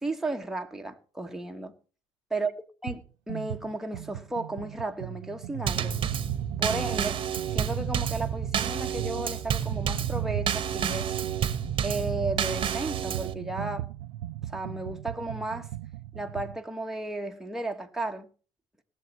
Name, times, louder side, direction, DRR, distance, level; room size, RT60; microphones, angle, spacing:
voice 1, 0.0-1.7 2.3-2.5 2.8-6.0 6.6-7.2 7.5-11.2 11.8-13.9 14.5-15.7 16.1-18.3, right 2 dB, 5° right, 1.4 m, -34 dB
sound 1, 2.9-3.0 3.3-16.6, right 13 dB, 80° right, 0.5 m, -38 dB
Drum kit / Snare drum / Bass drum, 5.7-13.3, right 8 dB, 40° right, 1.1 m, -30 dB
19.0 x 7.1 x 4.4 m
hypercardioid pair, 70°, 13 cm